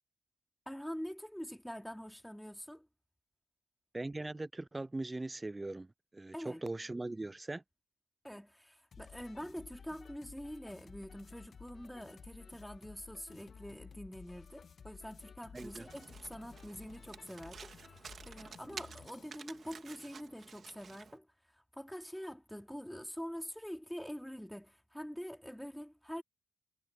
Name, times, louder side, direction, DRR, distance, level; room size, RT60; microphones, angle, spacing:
voice 1, 0.7-2.9 6.3-6.7 8.2-21.3 21.5-26.2, equal, ahead, 3.1 m, -45 dB
voice 2, 3.9-5.9 6.1-7.6 15.5-15.9 18.7-18.8, right 2 dB, 15° right, 0.3 m, -40 dB
sound 1, 8.9-19.5, left 6 dB, 45° left, 2.0 m, -55 dB
Domestic sounds home sounds, 15.5-21.2, right 6 dB, 45° right, 2.4 m, -52 dB
cardioid pair, 90°, 0 cm